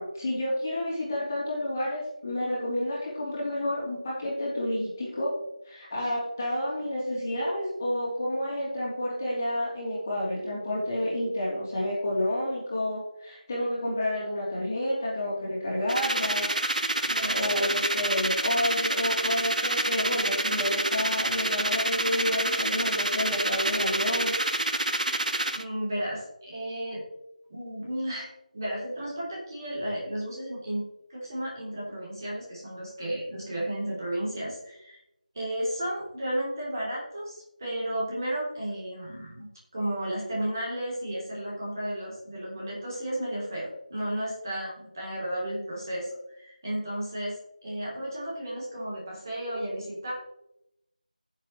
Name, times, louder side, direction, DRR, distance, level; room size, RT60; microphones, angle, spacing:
voice 1, 0.0-5.3 5.6-16.5 17.3-24.3, left 1 dB, 20° left, -7 dB, 3.1 m, -30 dB
sound 1, 15.9-25.6, right 1 dB, 65° right, 0.9 m, -28 dB
voice 2, 17.0-17.7 25.5-27.0 27.5-28.3 28.5-30.8 31.1-35.0 35.3-50.1, right 1 dB, 25° right, -5 dB, 3.4 m, -33 dB
15.0 x 7.5 x 3.2 m, 0.83 s
figure-of-eight pair, 175°, 4 cm